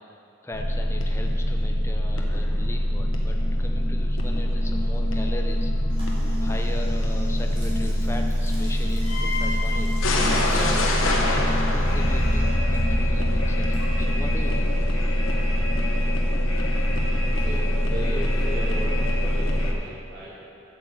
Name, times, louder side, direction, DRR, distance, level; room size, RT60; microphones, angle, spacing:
voice 1, 0.0-5.7 6.4-9.9 10.4-15.0, left 1 dB, 15° left, 2 dB, 0.6 m, -39 dB
sound 1, 0.5-19.7, left 1 dB, 80° left, 1.2 m, -23 dB
sound 2, 5.9-12.8 13.0-15.4, right 1 dB, 25° right, 2.6 m, -48 dB
voice 2, 16.9-20.4, right 2 dB, 50° right, -8 dB, 2.8 m, -37 dB
8.3 x 7.0 x 7.5 m, 2.6 s
head